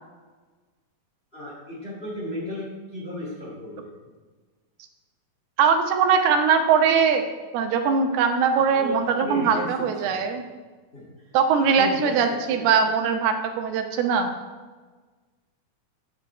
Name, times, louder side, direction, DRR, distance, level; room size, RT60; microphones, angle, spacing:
voice 1, 1.3-3.9 8.5-10.2 10.9-11.1 11.6-12.2 12.5-12.7, left 1 dB, 25° left, -5 dB, 1.5 m, -35 dB
voice 2, 5.6-7.2 7.5-10.4 11.3-14.4, right 6 dB, 85° right, 5 dB, 2.9 m, -21 dB
9.1 x 6.2 x 5.6 m, 1.3 s
omnidirectional pair, 4.5 m